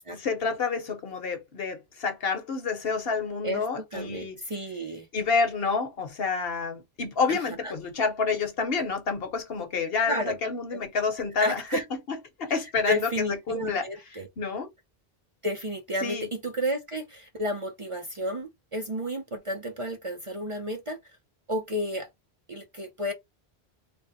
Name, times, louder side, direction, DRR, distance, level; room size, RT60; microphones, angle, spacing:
voice 1, 0.1-4.4 5.1-11.6 12.4-13.8 14.4-14.7 16.0-16.3, left 5 dB, 70° left, 1.1 m, -28 dB
voice 2, 3.4-5.1 7.3-7.8 10.1-10.4 10.7-10.8 11.4-11.8 12.6-14.3 15.4-21.0 21.5-22.1 22.5-23.1, equal, 40° right, 0.5 m, -32 dB
3.4 x 2.1 x 4.0 m
omnidirectional pair, 1.1 m